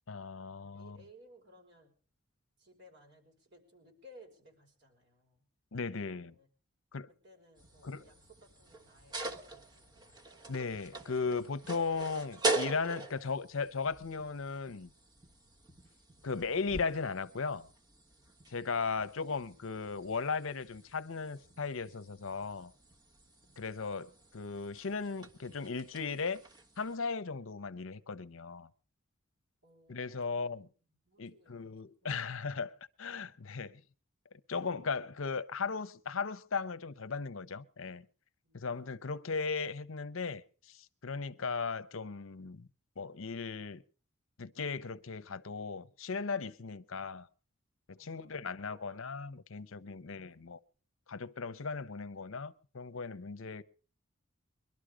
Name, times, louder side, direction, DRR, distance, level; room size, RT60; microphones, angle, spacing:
voice 1, 0.1-1.0 5.7-6.3 6.9-7.1 7.8-8.0 10.5-14.9 16.2-17.7 18.5-22.7 23.6-26.4 26.8-28.7 29.9-30.7 31.2-33.8 34.5-38.0 38.5-40.4 40.7-42.7 43.0-43.8 44.4-47.3 47.9-50.6 51.1-53.6, left 4 dB, 70° left, 0.8 m, -37 dB
voice 2, 0.7-1.9 2.6-5.4 6.0-6.5 7.2-10.3 23.4-23.6 29.6-30.7 31.1-31.7 32.0-32.7 33.3-33.5 38.4-39.3 48.0-49.4 49.8-50.4, equal, 55° right, 5.1 m, -61 dB
sound 1, 7.6-26.9, right 2 dB, 20° right, 1.3 m, -43 dB
23.0 x 12.0 x 5.0 m
head